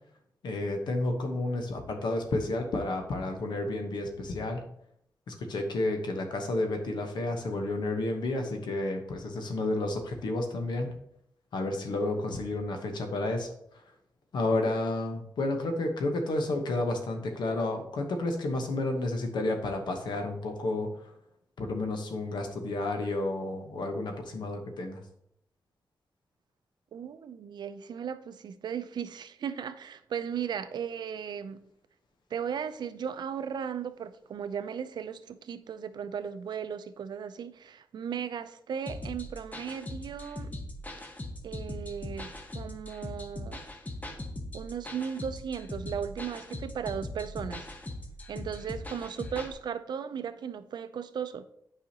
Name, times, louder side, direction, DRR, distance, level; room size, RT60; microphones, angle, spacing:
voice 1, 0.4-4.6 5.3-10.9 11.5-13.5 14.3-21.1 21.6-25.0, left 2 dB, 80° left, 1.0 m, -31 dB
voice 2, 26.9-31.6 32.3-40.5 41.4-43.6 44.5-47.7 48.3-51.5, right 7 dB, 75° right, 0.4 m, -36 dB
sound 1, 38.9-49.5, left 1 dB, 20° left, 0.8 m, -40 dB
8.6 x 4.9 x 2.8 m
wide cardioid pair, 95°, 7 cm